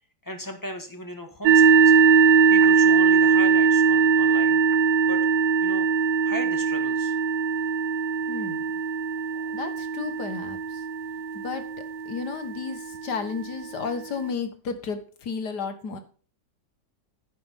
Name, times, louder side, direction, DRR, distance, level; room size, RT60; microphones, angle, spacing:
voice 1, 0.2-1.9 2.5-4.6 5.1-5.2 5.6-5.9 6.2-7.2, equal, 10° left, 5 dB, 1.6 m, -37 dB
sound 1, 1.4-13.0, right 6 dB, 85° right, 1.3 m, -20 dB
voice 2, 8.3-8.6 9.5-10.9 11.3-11.7 12.1-16.0, left 5 dB, 75° left, 8 dB, 2.0 m, -33 dB
11.0 x 9.5 x 3.7 m, 0.41 s
omnidirectional pair, 1.8 m